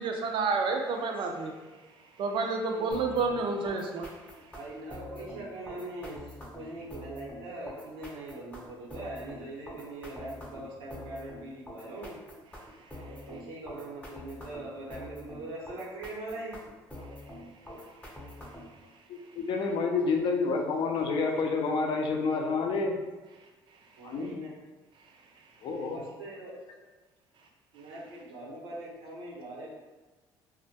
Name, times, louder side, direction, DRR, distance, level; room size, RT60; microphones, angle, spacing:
voice 1, 0.0-1.5 2.2-4.1, right 4 dB, 60° right, 3 dB, 0.4 m, -29 dB
sound 1, 2.9-18.8, left 1 dB, 15° left, 0.5 m, -46 dB
voice 2, 4.5-12.2 13.0-16.6 24.0-24.5 25.8-26.5 27.7-29.7, right 1 dB, 90° right, -6 dB, 0.7 m, -41 dB
voice 3, 19.1-23.0 24.0-24.4 25.6-26.0, left 4 dB, 60° left, 2 dB, 0.4 m, -29 dB
2.1 x 2.1 x 2.8 m, 1.2 s
cardioid pair, 95°, 9 cm